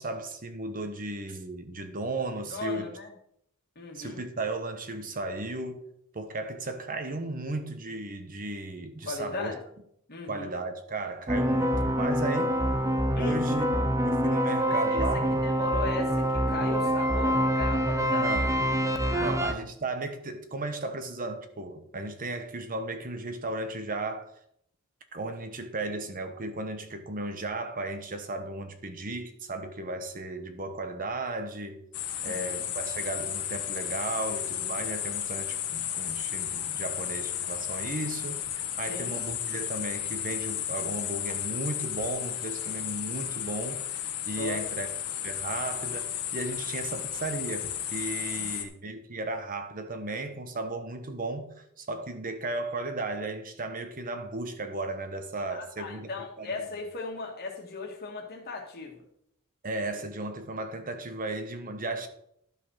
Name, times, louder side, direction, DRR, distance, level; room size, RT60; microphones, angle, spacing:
voice 1, 0.0-2.9 3.9-5.9 6.1-9.5 10.3-12.6 13.1-15.7 18.0-18.5 19.2-24.3 25.1-31.8 32.2-44.9 45.2-56.1 56.4-56.7 59.6-62.1, right 2 dB, 40° right, 1.0 m, -35 dB
voice 2, 2.5-3.1 3.8-4.2 9.1-9.6 10.1-10.5 13.2-13.4 14.6-18.3 19.1-19.5 32.2-32.6 38.9-39.2 44.4-44.6 48.3-48.6 55.5-59.0, left 3 dB, 45° left, 1.8 m, -37 dB
sound 1, 11.3-19.5, equal, 15° right, 0.8 m, -26 dB
sound 2, 31.9-48.6, left 10 dB, 85° left, 1.5 m, -33 dB
12.0 x 5.5 x 6.3 m
head